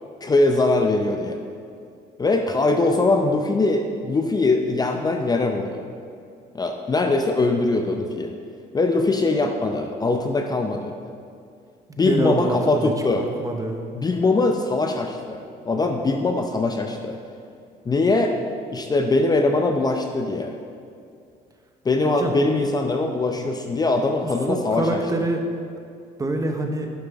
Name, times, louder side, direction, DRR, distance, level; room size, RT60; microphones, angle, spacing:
voice 1, 0.2-1.4 2.2-5.8 6.5-8.3 8.7-10.9 12.0-13.3 13.9-17.2 17.9-18.3 18.7-20.5 21.8-25.0, left 2 dB, 25° left, 4 dB, 0.6 m, -22 dB
voice 2, 11.9-13.8 22.0-22.4 24.5-25.4 26.2-26.9, right 2 dB, 20° right, 4 dB, 0.9 m, -26 dB
11.0 x 7.3 x 3.5 m, 2.3 s
cardioid pair, 110°, 17 cm